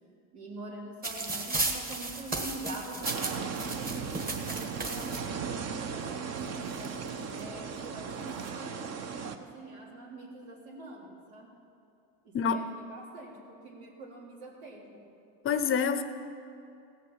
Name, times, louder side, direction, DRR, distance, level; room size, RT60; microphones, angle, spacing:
voice 1, 0.3-8.7 9.2-11.5 12.2-15.0, right 2 dB, 85° right, -3 dB, 3.5 m, -44 dB
sound 1, 1.0-5.2 6.1-6.2 6.4-7.4 8.1-8.5, right 3 dB, 20° right, 1.6 m, -35 dB
sound 2, 3.0-9.4, right 6 dB, 35° right, 0.9 m, -37 dB
voice 2, 15.4-16.0, left 6 dB, 30° left, 11 dB, 0.6 m, -26 dB
16.5 x 6.8 x 7.2 m, 2.6 s
supercardioid pair, 110°, 43 cm